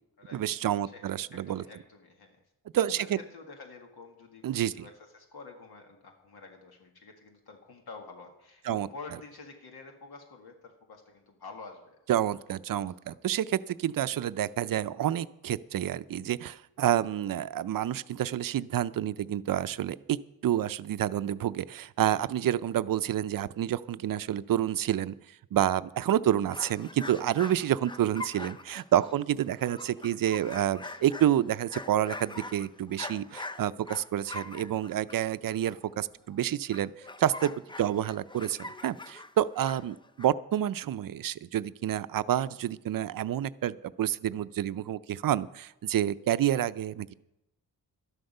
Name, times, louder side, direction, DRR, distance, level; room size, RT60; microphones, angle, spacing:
voice 1, 0.3-1.6 2.7-3.2 4.4-4.9 8.6-8.9 12.1-20.2 20.4-25.1 25.5-36.9 37.2-37.5 37.8-47.1, right 11 dB, 65° right, 15 dB, 0.5 m, -29 dB
voice 2, 0.9-2.4 2.9-4.4 4.8-12.0 13.0-13.2 30.4-30.5 30.8-31.0 46.4-46.5, left 4 dB, 85° left, 2 dB, 1.8 m, -48 dB
sound 1, 26.5-36.3 36.7-40.3, left 2 dB, 15° left, 0.4 m, -43 dB
12.5 x 11.5 x 5.4 m, 0.88 s
wide cardioid pair, 135°, 37 cm